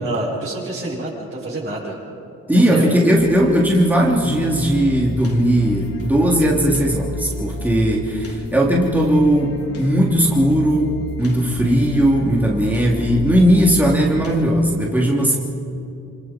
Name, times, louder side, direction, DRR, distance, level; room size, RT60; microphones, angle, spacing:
voice 1, 0.0-2.0 2.5-2.9, right 2 dB, 40° right, -8 dB, 7.5 m, -27 dB
voice 2, 2.5-15.4, equal, 5° right, -3 dB, 3.3 m, -17 dB
sound 1, 3.2-14.4, left 2 dB, 50° left, 3.5 m, -32 dB
27.5 x 26.5 x 4.6 m, 2.7 s
cardioid pair, 90°, 30 cm